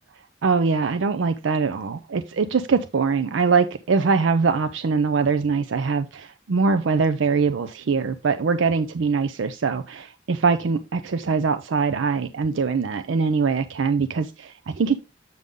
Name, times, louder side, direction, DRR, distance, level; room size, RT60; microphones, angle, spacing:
voice 1, 0.4-15.0, right 5 dB, 75° right, 0.5 m, -22 dB
7.8 x 5.4 x 3.5 m
head